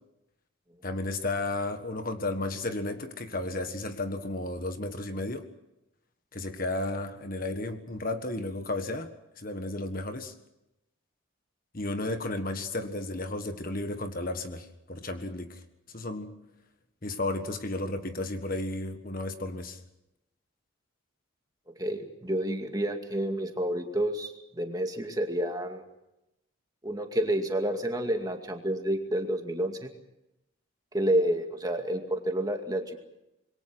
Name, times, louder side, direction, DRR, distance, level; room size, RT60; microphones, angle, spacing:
voice 1, 0.8-5.5 6.3-9.1 9.4-10.3 11.7-15.6 15.9-16.3 17.0-19.8, left 2 dB, 40° left, 8 dB, 1.6 m, -33 dB
voice 2, 21.8-25.8 26.8-29.9 30.9-33.0, right 1 dB, 15° right, 4 dB, 2.3 m, -29 dB
26.5 x 22.5 x 6.2 m, 0.89 s
head